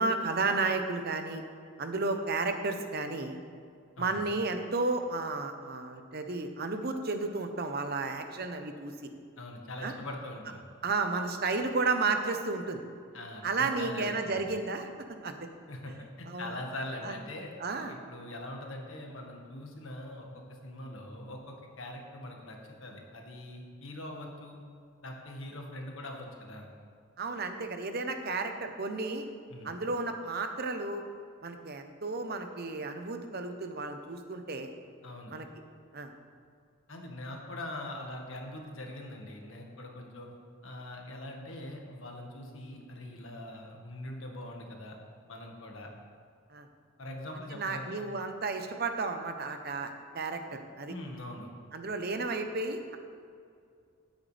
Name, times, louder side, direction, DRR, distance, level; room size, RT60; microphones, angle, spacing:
voice 1, 0.0-1.4 1.8-3.4 4.0-9.1 9.8-9.9 10.8-12.8 13.4-14.9 15.2-15.5 16.3-16.5 17.0-17.1 17.6-17.9 27.2-29.3 29.6-31.0 31.4-34.7 35.3-35.5 35.9-36.1 46.5-46.7 47.5-50.9 51.7-53.0, right 3 dB, 50° right, 6 dB, 0.9 m, -32 dB
voice 2, 9.4-10.6 13.1-14.5 15.7-17.5 17.9-24.6 25.0-26.7 29.5-29.7 35.0-35.4 36.9-40.3 40.6-45.0 45.3-45.9 47.0-48.0 50.9-51.5, left 1 dB, 70° left, 1 dB, 1.7 m, -42 dB
16.5 x 8.2 x 3.4 m, 2.3 s
head